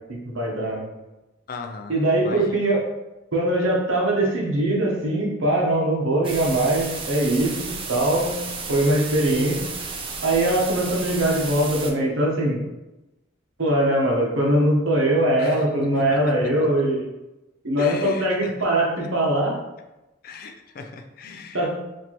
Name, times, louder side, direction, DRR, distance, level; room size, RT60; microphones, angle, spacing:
voice 1, 0.1-0.8 1.9-2.8 3.3-8.4 8.7-9.6 10.2-12.6 13.6-17.1 17.6-19.6 21.5-21.7, right 1 dB, 85° right, -1 dB, 1.0 m, -21 dB
voice 2, 1.5-1.9 2.2-2.6 15.4-15.6 15.9-16.2 17.8-18.5 20.2-21.7, left 4 dB, 50° left, 5 dB, 0.4 m, -37 dB
sound 1, 6.2-11.9, right 4 dB, 25° right, 0.4 m, -33 dB
4.4 x 2.6 x 3.0 m, 0.99 s
head